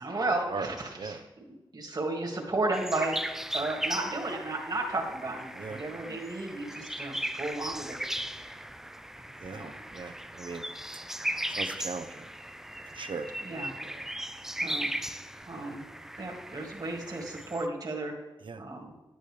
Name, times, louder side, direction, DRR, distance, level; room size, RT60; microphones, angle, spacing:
voice 1, 0.0-3.2 3.5-8.0 9.5-9.8 13.4-13.7 14.5-14.9 15.5-15.9 16.2-18.2 18.6-18.9, right 2 dB, 50° right, -1 dB, 1.9 m, -33 dB
sound 1, 2.7-17.7, right 1 dB, 5° right, 0.4 m, -37 dB
voice 2, 9.4-10.6 11.5-12.3 12.9-13.3 13.8-14.0 18.4-18.6, right 4 dB, 70° right, 9 dB, 0.7 m, -39 dB
10.5 x 9.2 x 3.2 m, 1.1 s
wide cardioid pair, 80°, 9 cm